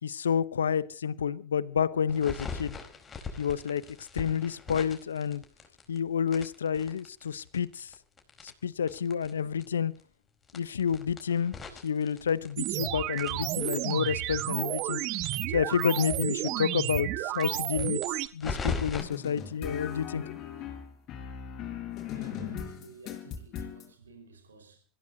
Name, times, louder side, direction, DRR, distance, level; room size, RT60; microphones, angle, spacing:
voice 1, 0.0-2.8 3.4-3.8 4.1-5.4 5.9-7.9 8.4-9.9 10.5-11.5 11.8-15.3 15.5-20.2, left 7 dB, 85° left, 0.8 m, -29 dB
sound 1, 2.1-6.0 6.3-9.3 9.6-9.7 9.9-10.0 10.4-12.8 13.1-16.2 16.4-16.5 16.8-16.9 17.3-19.0, left 4 dB, 25° left, 4.4 m, -39 dB
sound 2, 12.6-18.3, right 16 dB, 50° right, 1.1 m, -31 dB
sound 3, 19.0-23.9, left 9 dB, 45° left, 5.2 m, -39 dB
voice 2, 22.1-24.8, right 3 dB, 85° right, 5.0 m, -50 dB
26.0 x 16.0 x 2.8 m
hypercardioid pair, 90°, 0 cm